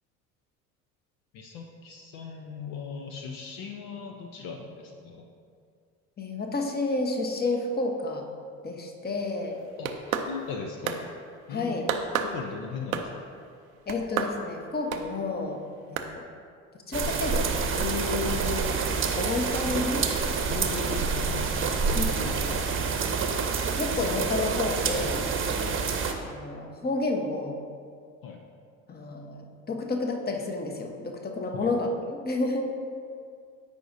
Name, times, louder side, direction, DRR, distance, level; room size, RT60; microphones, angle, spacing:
voice 1, 1.3-5.3 9.8-9.9 10.3-11.1 11.5-11.9 12.2-13.3 20.5-23.0 25.6-25.9 28.2-28.4 31.5-31.7, left 5 dB, 55° left, 2 dB, 0.8 m, -39 dB
voice 2, 6.2-8.2 8.6-9.6 11.5-11.9 13.9-15.6 15.9-16.2 16.9-17.5 17.8-20.1 21.9-22.6 23.7-25.3 26.3-27.6 28.9-32.6, left 2 dB, 25° left, 3 dB, 1.0 m, -30 dB
sound 1, 9.6-10.6 10.9-11.0 11.9-12.4 12.9-13.3 13.9-14.4 14.9-15.1 16.0-16.1, right 7 dB, 90° right, 0.6 m, -29 dB
sound 2, 16.9-26.1, right 5 dB, 30° right, 0.9 m, -27 dB
13.0 x 5.1 x 2.7 m, 2.2 s
hypercardioid pair, 60°, 40 cm